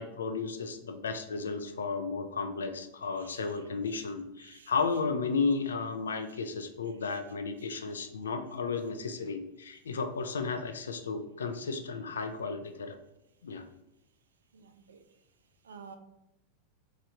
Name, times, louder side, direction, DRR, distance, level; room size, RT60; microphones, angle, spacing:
voice 1, 0.0-13.0 13.4-13.6, left 4 dB, 70° left, 7 dB, 0.3 m, -33 dB
voice 2, 4.4-4.7 14.5-15.0 15.6-16.0, right 5 dB, 65° right, 7 dB, 0.3 m, -51 dB
3.1 x 2.3 x 2.8 m, 0.92 s
figure-of-eight pair, 90°, 0 cm